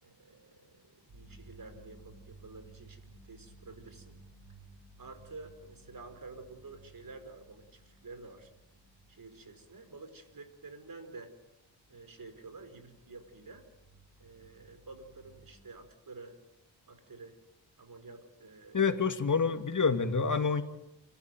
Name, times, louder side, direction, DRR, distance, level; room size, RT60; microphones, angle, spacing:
voice 1, 0.0-4.2 5.0-8.5 9.1-11.3 11.9-13.7 14.2-16.4 16.9-17.4 17.8-18.9 19.8-20.0, right 3 dB, 45° right, 8 dB, 5.0 m, -50 dB
sound 1, 1.1-10.8 11.7-15.6, right 2 dB, 80° right, 7.6 m, -58 dB
voice 2, 18.7-20.6, left 5 dB, 40° left, 7 dB, 2.5 m, -27 dB
30.0 x 13.0 x 9.3 m, 0.88 s
cardioid pair, 65°, 45 cm